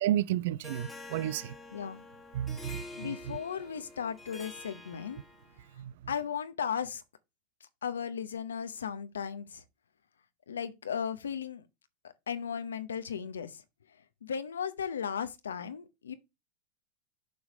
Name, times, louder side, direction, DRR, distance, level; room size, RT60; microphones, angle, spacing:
voice 1, 0.0-1.5 2.3-3.2 5.8-5.9, right 12 dB, 65° right, 0.4 m, -32 dB
Harp, 0.6-5.6, left 3 dB, 10° left, 1.5 m, -47 dB
voice 2, 1.7-2.0 3.0-5.2 6.1-7.0 7.8-9.6 10.5-11.6 12.0-13.6 14.2-16.1, left 7 dB, 90° left, 0.8 m, -36 dB
7.0 x 3.2 x 6.1 m
hypercardioid pair, 105°, 0 cm